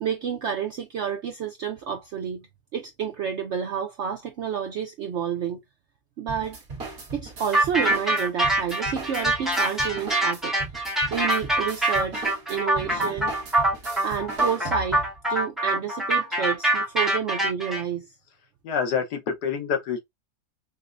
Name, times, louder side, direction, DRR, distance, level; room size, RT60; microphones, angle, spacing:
voice 1, 0.0-2.5 2.7-5.6 6.2-6.6 7.1-10.5 10.8-13.3 14.0-18.1, right 8 dB, 75° right, 0.6 m, -30 dB
sound 1, 6.3-15.2, right 3 dB, 50° right, 1.5 m, -38 dB
sound 2, 7.5-17.8, right 1 dB, ahead, 0.7 m, -24 dB
voice 2, 18.6-20.0, left 6 dB, 85° left, 1.5 m, -27 dB
5.2 x 2.0 x 2.5 m
omnidirectional pair, 1.7 m